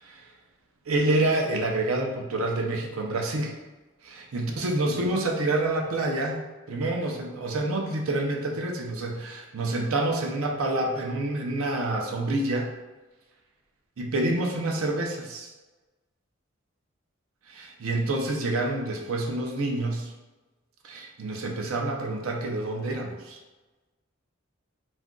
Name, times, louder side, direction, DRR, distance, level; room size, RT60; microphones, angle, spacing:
voice 1, 0.9-3.5 4.0-6.4 6.7-12.7 14.0-15.5 17.5-20.1 20.8-23.4, right 2 dB, 90° right, 1 dB, 0.5 m, -27 dB
2.4 x 2.2 x 3.6 m, 1.2 s
head